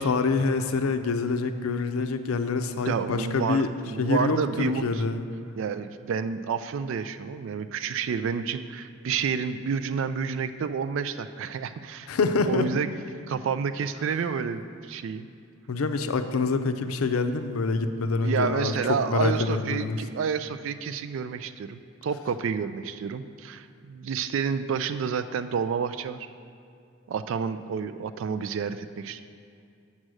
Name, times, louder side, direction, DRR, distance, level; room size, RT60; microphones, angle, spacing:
voice 1, 0.0-3.7 4.0-5.2 12.1-12.7 15.7-18.7 19.1-20.0, left 4 dB, 90° left, 9 dB, 0.5 m, -26 dB
voice 2, 2.9-5.0 5.6-12.1 12.4-12.9 13.3-15.3 18.2-26.2 27.1-29.2, right 6 dB, 65° right, 11 dB, 0.3 m, -29 dB
7.3 x 6.4 x 6.2 m, 2.5 s
head